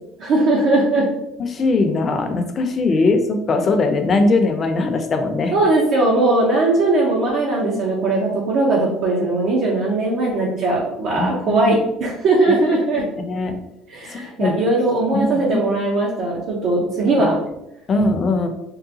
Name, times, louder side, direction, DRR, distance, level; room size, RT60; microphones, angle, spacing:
voice 1, 0.2-1.1 5.5-13.0 13.9-17.4, right 2 dB, 65° right, -4 dB, 0.7 m, -19 dB
voice 2, 1.4-5.5 11.2-11.7 13.2-13.6 14.1-14.6 15.1-15.7 17.1-17.3 17.9-18.5, left 3 dB, 35° left, 6 dB, 0.5 m, -20 dB
3.7 x 2.2 x 2.7 m, 0.85 s
supercardioid pair, 100°, 0 cm